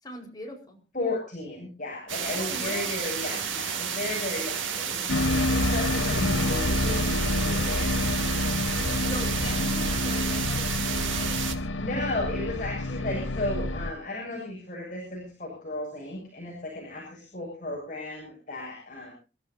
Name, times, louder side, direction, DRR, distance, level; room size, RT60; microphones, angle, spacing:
voice 1, 0.0-0.8 2.3-3.1 8.8-11.6, left 1 dB, 20° left, 1 dB, 4.8 m, -41 dB
voice 2, 0.9-5.3 5.7-7.2 7.4-8.0 9.4-9.6 11.8-19.1, left 2 dB, 40° left, -2 dB, 7.3 m, -34 dB
sound 1, 2.1-11.5, right 7 dB, 85° right, 2.6 m, -31 dB
sound 2, 5.1-13.9, left 1 dB, 85° left, 1.1 m, -28 dB
28.5 x 14.0 x 2.8 m, 0.34 s
head